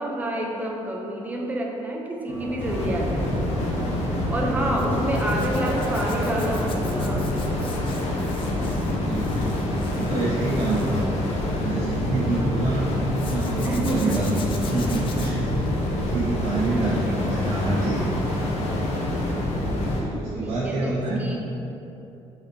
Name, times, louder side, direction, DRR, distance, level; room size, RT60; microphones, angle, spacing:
voice 1, 0.0-3.3 4.3-7.3 13.6-14.2 15.9-16.1 16.5-17.2 20.4-21.4, right 1 dB, 15° right, -1 dB, 0.7 m, -29 dB
sound 1, 2.3-8.7, right 1 dB, 30° right, 1.3 m, -36 dB
sound 2, 2.6-20.0, left 1 dB, 65° left, 1.1 m, -26 dB
Zipper (clothing), 4.8-12.2 13.1-16.8 17.1-17.5 19.8-20.0 20.2-20.3, left 6 dB, 45° left, 0.6 m, -43 dB
voice 2, 8.5-9.6 9.9-11.2 11.6-12.9 13.2-15.4 15.9-18.1 20.0-21.2, right 2 dB, 60° right, -9 dB, 1.3 m, -27 dB
5.7 x 4.2 x 4.6 m, 2.9 s
cardioid pair, 145°, 12 cm